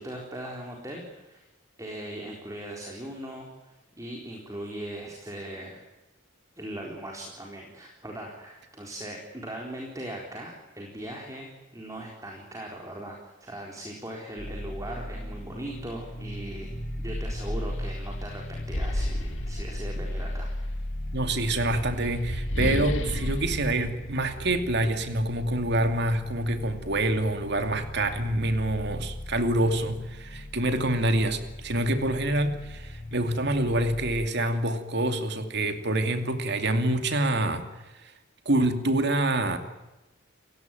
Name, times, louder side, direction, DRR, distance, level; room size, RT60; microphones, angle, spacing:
voice 1, 0.0-1.5 1.8-5.8 6.6-16.7 17.0-20.5, right 1 dB, 15° right, 0 dB, 4.1 m, -39 dB
sound 1, 14.4-34.3, left 1 dB, 45° left, 4.5 m, -38 dB
sound 2, 16.2-16.3 16.7-20.4 21.3-24.9, left 1 dB, 70° left, 2.1 m, -33 dB
voice 2, 21.1-37.6 38.5-39.6, right 1 dB, 55° right, 7 dB, 2.6 m, -26 dB
30.0 x 16.5 x 9.2 m, 1.0 s
head